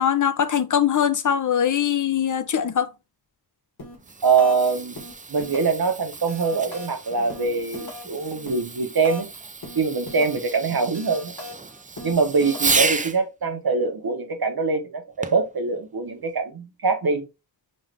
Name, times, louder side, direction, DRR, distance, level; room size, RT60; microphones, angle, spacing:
voice 1, 0.0-2.9, left 8 dB, 50° left, 0.5 m, -22 dB
sound 1, 3.8-4.1 4.4-4.7 5.0-5.9 6.1-9.4 9.6-10.5 10.8-13.0, left 2 dB, 75° left, 1.9 m, -39 dB
Fireworks, 3.9-13.2 15.2-15.6 16.3-16.4, right 4 dB, 20° right, 0.3 m, -32 dB
voice 2, 4.2-5.0 5.3-9.3 9.7-11.3 12.0-17.2, right 4 dB, 65° right, 0.9 m, -23 dB
5.3 x 2.5 x 3.2 m
wide cardioid pair, 50°, 39 cm